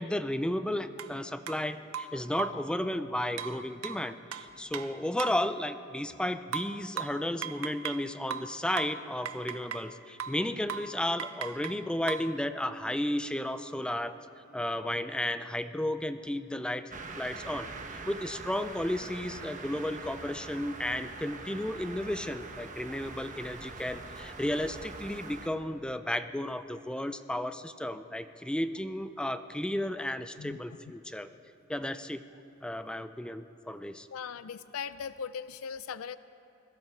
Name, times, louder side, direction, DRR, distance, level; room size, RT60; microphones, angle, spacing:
voice 1, 0.0-14.2 14.5-16.9 17.2-31.3 31.7-32.2 32.6-34.1, left 1 dB, 5° left, 10 dB, 0.4 m, -33 dB
sound 1, 1.0-1.1 1.5-1.6 1.9-2.7 3.4-5.5 6.5-8.0 8.3-9.9 10.2-10.4 10.7-10.9 11.2-12.3, right 7 dB, 85° right, 0.6 m, -38 dB
sound 2, 16.9-25.5, right 3 dB, 40° right, 1.1 m, -43 dB
voice 2, 34.1-36.2, left 6 dB, 85° left, 15 dB, 0.4 m, -39 dB
21.0 x 15.0 x 4.6 m, 3.0 s
head